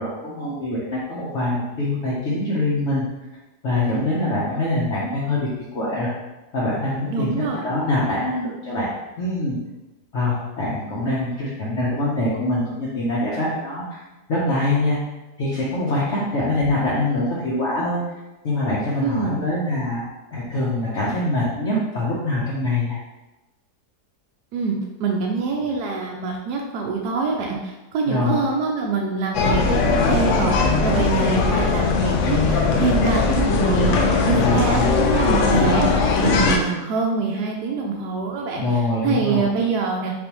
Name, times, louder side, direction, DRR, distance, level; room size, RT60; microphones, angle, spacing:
voice 1, 0.0-3.0 3.6-5.5 5.7-6.1 6.5-8.9 9.2-9.6 10.1-14.0 14.3-15.0 15.4-18.0 18.4-20.0 20.3-23.0 28.1-28.5 34.3-35.0 38.6-39.4, left 1 dB, 50° left, -8 dB, 1.0 m, -24 dB
voice 2, 7.1-7.6 19.0-19.3 24.5-30.5 30.8-40.1, right 4 dB, 75° right, 0 dB, 1.1 m, -25 dB
sound 1, 29.3-36.6, left 4 dB, 75° left, 0.7 m, -19 dB
4.1 x 3.7 x 3.0 m, 1.0 s
omnidirectional pair, 1.8 m